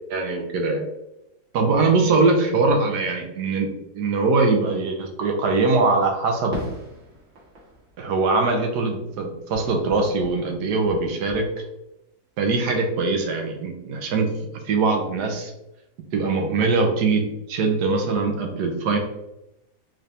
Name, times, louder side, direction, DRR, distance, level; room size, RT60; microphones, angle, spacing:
voice 1, 0.1-0.8 1.5-6.6 8.0-11.5 12.4-14.3 14.6-15.5 16.1-17.2 17.5-19.0, right 3 dB, 85° right, 3 dB, 1.3 m, -22 dB
Fireworks, 6.5-9.1 9.5-11.4, equal, 55° right, 1.3 m, -40 dB
3.8 x 3.3 x 2.8 m, 0.91 s
omnidirectional pair, 1.7 m